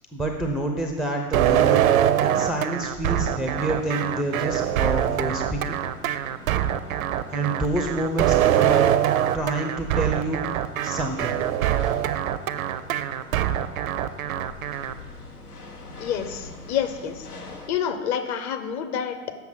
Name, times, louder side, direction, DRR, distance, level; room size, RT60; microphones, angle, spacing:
voice 1, 0.1-5.8 7.3-8.9 9.3-10.4 10.8-11.4, right 1 dB, ahead, 1 dB, 0.4 m, -28 dB
sound 1, 1.3-14.9, right 11 dB, 65° right, 0.6 m, -23 dB
sound 2, 3.0-17.7, left 2 dB, 90° left, 1.0 m, -44 dB
voice 2, 16.0-17.3 17.7-19.3, left 8 dB, 40° left, 8 dB, 0.8 m, -28 dB
7.2 x 5.8 x 5.6 m, 1.3 s
figure-of-eight pair, 85°, 44 cm